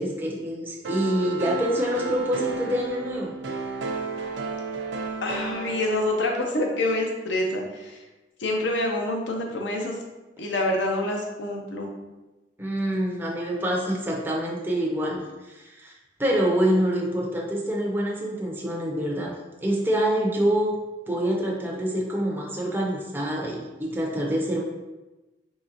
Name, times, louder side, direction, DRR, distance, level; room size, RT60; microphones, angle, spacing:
voice 1, 0.0-3.4 12.6-15.2 15.5-15.9 16.2-19.3 19.6-20.8 21.1-24.6, equal, 10° right, -2 dB, 0.5 m, -26 dB
sound 1, 0.8-6.7, right 3 dB, 75° right, 0.4 m, -33 dB
voice 2, 5.2-8.0 8.4-10.0 10.4-11.9, left 1 dB, 85° left, 1 dB, 0.7 m, -26 dB
3.8 x 3.1 x 2.7 m, 1.1 s
head